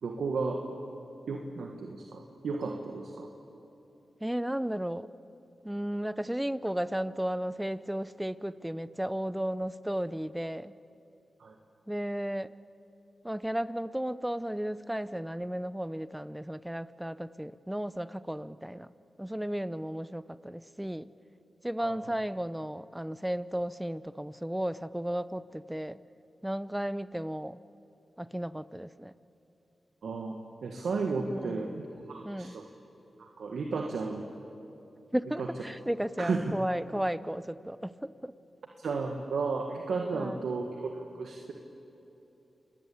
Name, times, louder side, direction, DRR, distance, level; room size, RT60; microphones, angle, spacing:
voice 1, 0.0-0.7 1.3-3.3 11.4-11.6 21.8-22.0 30.0-32.7 33.2-34.3 35.4-35.5 36.2-36.5 38.8-41.5, right 4 dB, 80° right, 2 dB, 1.8 m, -33 dB
voice 2, 4.2-5.1 5.6-10.7 11.9-12.5 13.2-18.9 19.2-21.1 21.6-26.0 26.4-27.6 28.2-29.1 31.3-31.7 32.2-32.5 35.1-38.3 40.1-40.4, right 1 dB, 10° right, 16 dB, 0.8 m, -34 dB
27.0 x 20.0 x 8.7 m, 3.0 s
cardioid pair, 50°, 0 cm